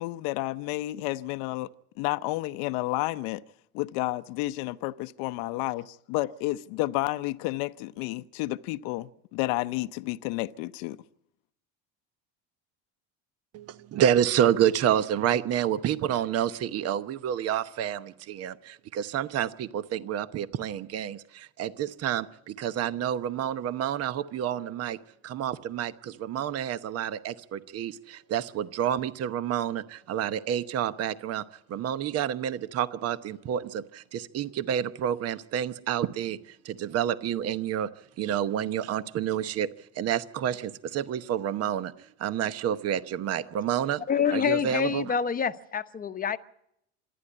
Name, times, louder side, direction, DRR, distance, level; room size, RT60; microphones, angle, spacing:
voice 1, 0.0-1.7 2.0-3.4 3.7-5.8 6.1-11.0, left 18 dB, 70° left, 0.7 m, -31 dB
voice 2, 13.5-25.0 25.2-37.9 38.2-39.7 39.9-41.9 42.2-44.0 44.3-45.1, right 10 dB, 45° right, 1.0 m, -29 dB
voice 3, 44.1-46.4, left 7 dB, 25° left, 0.9 m, -27 dB
26.5 x 10.5 x 9.8 m
supercardioid pair, 110°, 35 cm